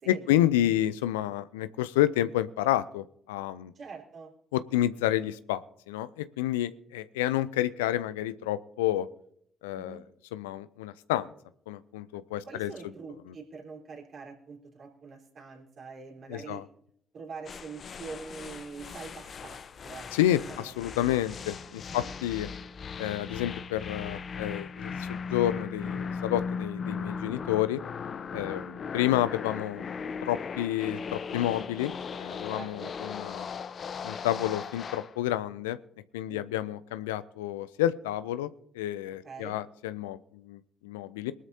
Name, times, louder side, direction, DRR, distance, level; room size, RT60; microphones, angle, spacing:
voice 1, 0.1-3.7 4.5-5.6 5.9-9.1 9.6-10.0 10.3-11.3 11.7-12.7 16.3-16.6 20.1-22.5 23.0-27.8 28.3-29.8 30.2-31.9 32.2-33.5 34.0-35.8 36.1-38.5 38.7-40.2 40.4-41.3, left 13 dB, 80° left, 15 dB, 0.5 m, -29 dB
voice 2, 3.7-4.3 9.7-10.0 12.5-16.6 17.1-20.1 20.5-21.1 21.9-22.1 28.3-28.6 32.5-32.9 36.3-36.5 39.2-39.6, right 4 dB, 55° right, 0 dB, 4.0 m, -44 dB
sound 1, 17.5-35.1, left 5 dB, 50° left, 0.8 m, -38 dB
23.0 x 12.5 x 2.8 m, 0.67 s
hypercardioid pair, 45°, 0 cm